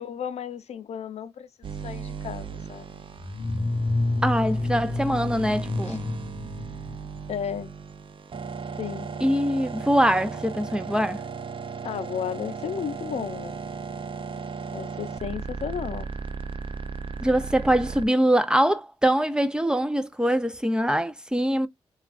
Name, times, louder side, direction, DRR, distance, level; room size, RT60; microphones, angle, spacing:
voice 1, 0.0-3.0 5.8-6.0 7.3-7.7 8.8-9.1 11.8-13.6 14.7-16.1, left 8 dB, 80° left, 0.5 m, -34 dB
sound 1, 1.6-18.1, right 5 dB, 55° right, 0.6 m, -36 dB
sound 2, 3.2-7.3, left 2 dB, 45° left, 0.8 m, -28 dB
voice 2, 4.2-6.0 9.2-11.2 17.2-21.7, equal, 5° right, 0.5 m, -23 dB
3.3 x 2.3 x 2.4 m
cardioid pair, 60°, 11 cm